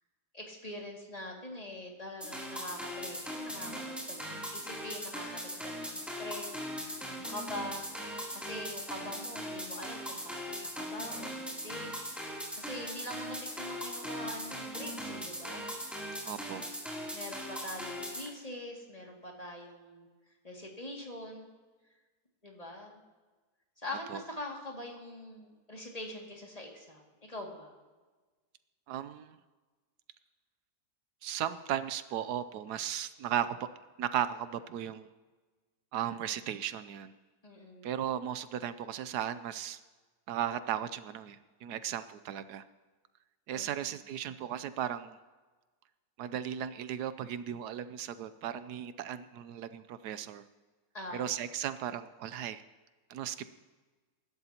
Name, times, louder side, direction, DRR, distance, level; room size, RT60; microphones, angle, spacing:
voice 1, 0.3-15.7 17.1-20.1 20.4-21.5 22.4-23.0 23.8-27.8 37.4-37.9 43.5-44.0 50.9-51.4, left 1 dB, 25° left, -1 dB, 2.4 m, -44 dB
sound 1, 2.2-18.3, equal, ahead, 3.0 m, -40 dB
voice 2, 16.2-16.6 24.1-24.2 28.9-29.4 31.2-33.6 34.0-35.1 35.9-37.1 37.8-39.8 40.3-42.6 43.5-45.2 46.2-50.4 51.1-52.6 53.1-53.5, right 10 dB, 80° right, 13 dB, 1.2 m, -36 dB
23.5 x 12.0 x 2.9 m, 1.3 s
omnidirectional pair, 1.7 m